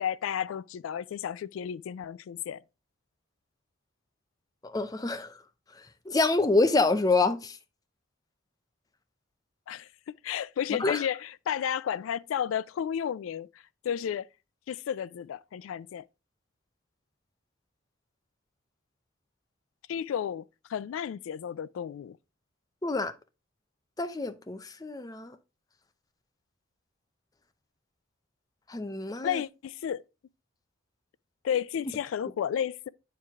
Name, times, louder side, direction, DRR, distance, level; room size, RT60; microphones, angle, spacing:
voice 1, 0.0-2.6 9.7-13.5 13.8-14.3 14.7-16.0 19.9-20.4 20.7-22.2 29.2-30.0 31.4-32.9, left 9 dB, 80° left, 0.3 m, -32 dB
voice 2, 4.6-5.4 5.8-7.6 10.8-11.0 22.8-23.1 24.0-25.4 28.7-29.4, left 3 dB, 20° left, 0.5 m, -27 dB
8.9 x 4.7 x 3.5 m
head